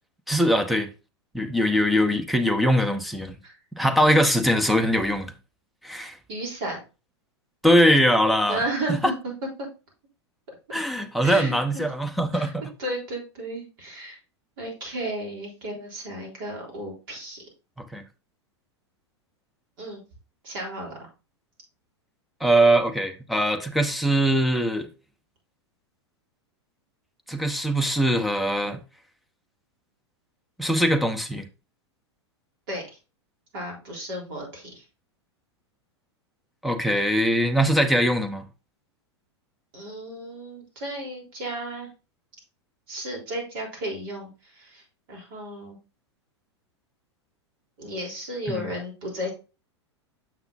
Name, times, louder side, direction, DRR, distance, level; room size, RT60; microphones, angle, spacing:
voice 1, 0.3-0.9 1.3-3.4 3.8-5.3 5.8-6.2 7.6-8.6 9.0-9.1 10.7-12.6 17.8-18.0 22.4-24.9 27.3-28.8 30.6-31.4 36.6-38.4 48.5-48.7, equal, ahead, 0.8 m, -22 dB
voice 2, 6.3-6.8 8.5-9.3 9.6-9.7 11.2-11.8 12.3-12.5 12.8-14.2 14.6-17.4 19.8-20.0 20.4-21.1 32.7-33.0 33.5-34.8 39.7-41.9 42.9-45.8 47.8-49.3, right 1 dB, 50° right, 3.6 m, -33 dB
7.3 x 5.8 x 2.6 m
figure-of-eight pair, 95°, 14 cm